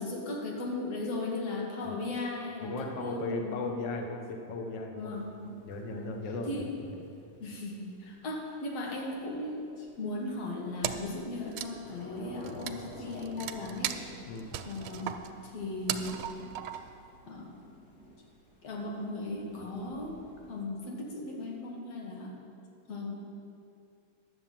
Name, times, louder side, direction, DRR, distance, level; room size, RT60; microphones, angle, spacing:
voice 1, 0.0-3.7 5.0-5.6 5.9-6.1 6.5-6.7 7.4-14.0 14.6-15.2 15.4-16.5 17.3-17.6 18.6-20.2 20.5-22.4 22.9-23.3, left 2 dB, 60° left, -1 dB, 2.5 m, -37 dB
voice 2, 2.6-5.2 5.6-6.9 14.3-14.5, left 3 dB, 80° left, 3 dB, 1.0 m, -36 dB
Thunder / Rain, 5.2-20.6, left 1 dB, 30° left, 1.3 m, -51 dB
Wood, 10.8-11.2 11.5-17.0, right 11 dB, 85° right, 2.1 m, -37 dB
10.5 x 7.9 x 7.4 m, 2.5 s
omnidirectional pair, 3.4 m